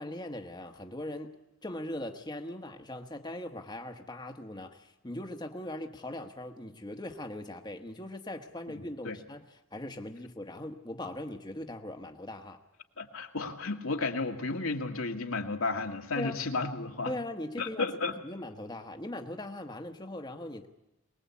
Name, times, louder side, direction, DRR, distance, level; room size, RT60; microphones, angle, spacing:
voice 1, 0.0-1.3 1.6-12.6 16.1-16.4 17.1-20.7, left 1 dB, 20° left, 4 dB, 1.2 m, -40 dB
voice 2, 13.0-17.1 17.6-18.1, left 3 dB, 80° left, 3 dB, 2.0 m, -33 dB
23.5 x 19.5 x 8.4 m, 0.93 s
head